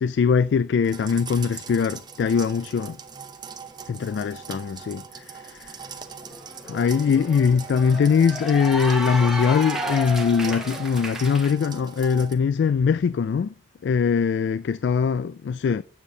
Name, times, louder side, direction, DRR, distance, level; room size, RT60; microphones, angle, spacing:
voice 1, 0.0-3.0 3.9-5.8 6.7-13.5 13.8-15.8, left 6 dB, 80° left, 0.3 m, -22 dB
sound 1, 0.8-12.3, right 6 dB, 25° right, 0.8 m, -41 dB
Cheering / Applause, 5.7-5.8 6.1-11.5, equal, 5° right, 1.1 m, -32 dB
8.4 x 7.1 x 3.9 m
head